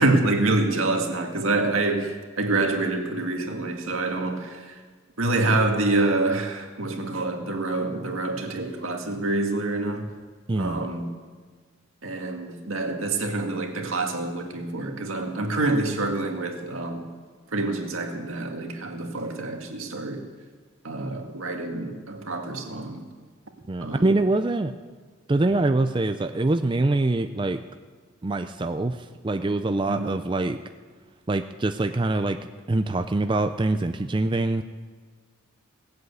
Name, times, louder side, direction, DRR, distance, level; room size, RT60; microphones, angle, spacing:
voice 1, 0.0-4.8 5.2-10.1 10.6-11.1 12.0-17.1 17.5-20.2 20.8-23.1 23.8-24.1 29.9-30.2, right 2 dB, 85° right, 3 dB, 1.8 m, -26 dB
voice 2, 10.5-10.9 23.7-24.7 25.3-27.6 28.2-30.6 31.3-32.4 32.7-34.6, right 2 dB, 25° right, 8 dB, 0.4 m, -24 dB
18.5 x 7.8 x 8.1 m, 1.5 s
head